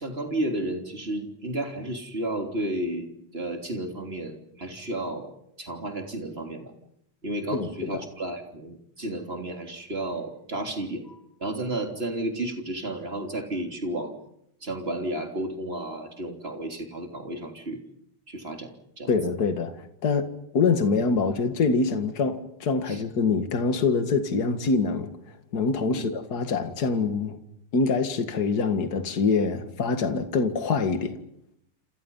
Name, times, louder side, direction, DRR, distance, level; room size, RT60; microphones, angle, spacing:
voice 1, 0.0-3.1 3.3-5.3 5.6-6.7 7.2-14.2 14.6-17.8 18.3-19.1 22.9-23.0 25.9-26.1, right 1 dB, 25° right, 3.6 m, -32 dB
voice 2, 7.5-7.9 19.1-25.1 25.5-27.4 27.7-31.2, left 4 dB, 45° left, 2.3 m, -25 dB
28.5 x 28.5 x 5.6 m
omnidirectional pair, 2.4 m